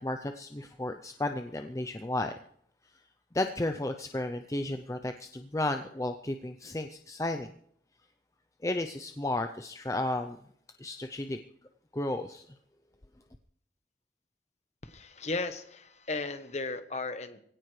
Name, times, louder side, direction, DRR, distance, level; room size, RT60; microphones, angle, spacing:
voice 1, 0.0-2.3 3.3-7.5 8.6-10.4 10.8-11.4 11.9-12.4, left 1 dB, 20° left, 6 dB, 0.5 m, -33 dB
voice 2, 14.8-17.4, left 3 dB, 40° left, 9 dB, 1.1 m, -35 dB
22.5 x 16.5 x 3.2 m, 0.67 s
head